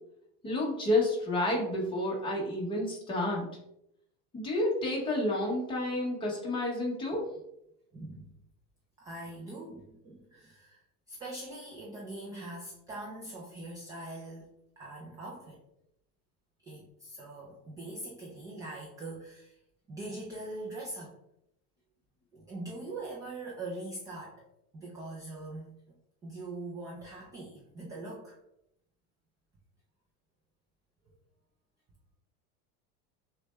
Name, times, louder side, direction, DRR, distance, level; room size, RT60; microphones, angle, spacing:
voice 1, 0.4-3.5 4.3-7.3, left 1 dB, 15° left, -2 dB, 0.9 m, -30 dB
voice 2, 7.9-8.3 9.0-10.8 11.1-15.6 16.6-19.6 19.9-21.1 22.3-24.4 24.7-25.8 26.2-28.4, right 2 dB, 10° right, -3 dB, 0.3 m, -42 dB
6.0 x 2.2 x 3.1 m, 0.79 s
cardioid pair, 175°, 31 cm